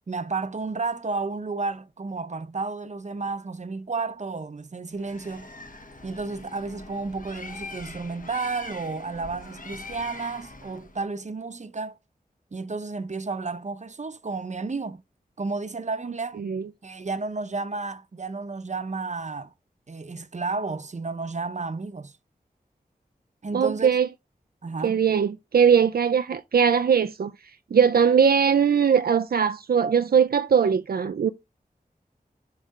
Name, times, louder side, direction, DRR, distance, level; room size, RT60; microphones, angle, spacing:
voice 1, 0.1-5.5 6.0-12.0 12.5-15.0 15.4-16.4 16.8-19.5 19.9-22.1 23.4-23.9 24.6-25.0, right 3 dB, 50° right, 0.8 m, -32 dB
Bird, 4.9-11.0, left 3 dB, 60° left, 1.5 m, -42 dB
voice 2, 16.4-16.7 23.5-24.1 24.8-27.3 27.7-31.3, right 7 dB, 80° right, 0.4 m, -20 dB
7.4 x 3.3 x 5.3 m
wide cardioid pair, 80°, 16 cm